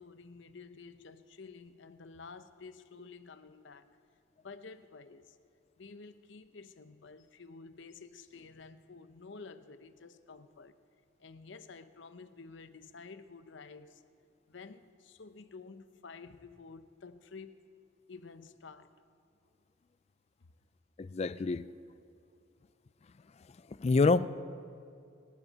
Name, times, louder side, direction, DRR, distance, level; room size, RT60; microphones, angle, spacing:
voice 1, 0.0-3.9 4.4-5.4 5.8-10.7 11.2-14.0 14.5-17.7 18.1-18.9, left 4 dB, 65° left, 0.7 m, -51 dB
voice 2, 21.0-21.7 23.8-24.3, left 3 dB, 30° left, 0.3 m, -26 dB
27.0 x 10.5 x 4.1 m
head